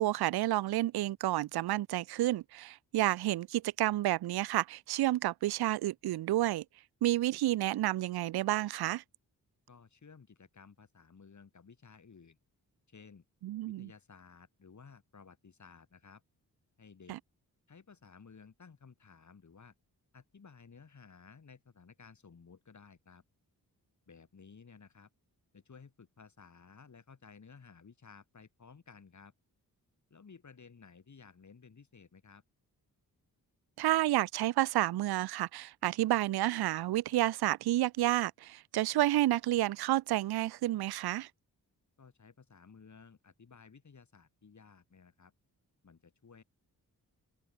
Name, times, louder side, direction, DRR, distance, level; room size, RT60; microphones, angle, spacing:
voice 1, 0.0-6.6 7.0-9.0 13.4-13.9 17.1-17.2 33.8-41.3, right 15 dB, 80° right, 0.5 m, -30 dB
voice 2, 9.7-12.4 12.9-13.2 13.7-16.2 16.8-17.2 17.7-19.7 20.1-23.2 24.1-25.1 25.5-29.3 30.1-32.4 42.0-45.3 45.8-46.4, left 5 dB, 50° left, 5.0 m, -56 dB
open air
cardioid pair, 85°, 37 cm